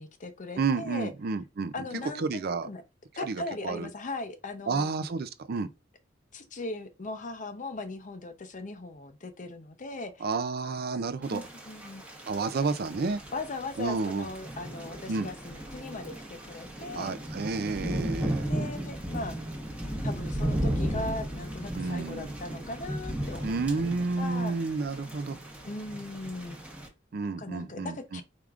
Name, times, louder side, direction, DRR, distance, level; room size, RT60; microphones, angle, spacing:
voice 1, 0.0-1.1 1.7-2.8 3.1-4.9 6.3-10.3 11.3-12.0 12.6-12.8 13.3-17.2 18.5-19.4 20.0-23.6 24.2-24.6 25.6-26.6 27.2-28.2, left 2 dB, 40° left, 0.7 m, -38 dB
voice 2, 0.6-1.7 2.0-2.7 3.2-3.9 4.7-5.7 10.2-11.5 12.3-13.2 13.8-14.3 15.1-15.3 16.9-18.5 21.7-22.3 23.4-25.4 27.1-28.2, right 4 dB, 50° right, 0.4 m, -31 dB
Thunder / Rain, 11.2-26.9, right 1 dB, 5° right, 1.0 m, -35 dB
4.7 x 3.5 x 2.4 m
head